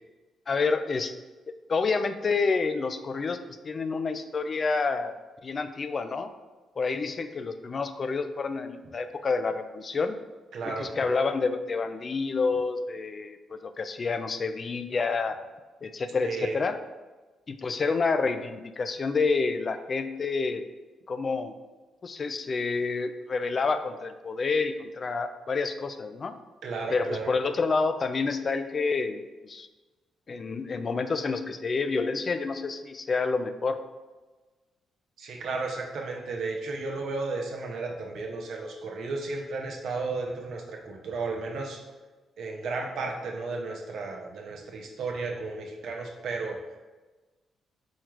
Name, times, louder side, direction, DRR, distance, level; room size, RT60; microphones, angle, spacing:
voice 1, 0.5-1.1 1.7-3.4 3.6-5.1 5.4-6.3 6.8-10.2 10.7-15.4 15.8-16.8 17.5-20.6 21.1-21.5 22.0-26.4 26.9-29.7 30.3-33.8, left 4 dB, 45° left, 9 dB, 0.3 m, -28 dB
voice 2, 10.5-11.0 16.2-16.6 26.6-27.3 35.2-41.8 42.4-46.6, right 3 dB, 70° right, 1 dB, 0.7 m, -34 dB
4.4 x 2.3 x 4.6 m, 1.2 s
supercardioid pair, 60°, 0 cm